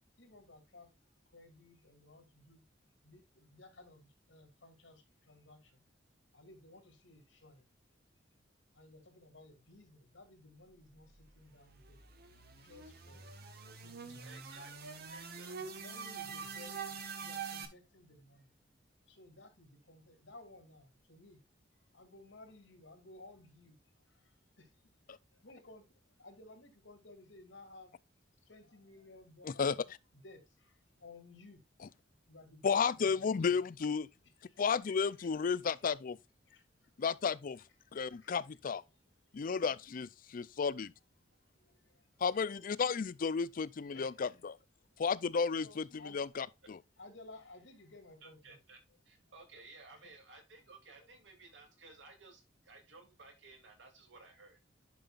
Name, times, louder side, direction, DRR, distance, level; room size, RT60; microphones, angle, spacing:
voice 1, 0.0-2.6 3.0-5.8 6.3-8.0 8.7-13.3 13.7-14.6 15.6-18.5 19.1-21.4 21.7-27.9 28.3-29.9 30.1-31.6 32.0-33.7 34.4-34.6 34.9-35.6 36.4-37.0 37.9-38.4 38.9-39.7 41.4-42.1 42.3-42.7 43.9-44.3 45.4-46.2 47.0-48.6 48.9-49.0 49.9-50.2 51.0-51.1 51.6-51.7, left 2 dB, 85° left, 2.7 m, -58 dB
sound 1, 11.3-17.7, right 5 dB, 55° right, 1.2 m, -45 dB
voice 2, 14.2-15.6 15.9-16.2 48.2-48.8 49.0-54.6, right 3 dB, 75° right, 2.6 m, -57 dB
voice 3, 32.6-34.1 34.6-36.2 37.0-37.6 37.9-38.8 39.3-40.9 42.2-44.5 45.0-45.6 46.1-46.8, left 5 dB, 50° left, 0.4 m, -33 dB
10.5 x 5.5 x 2.4 m
head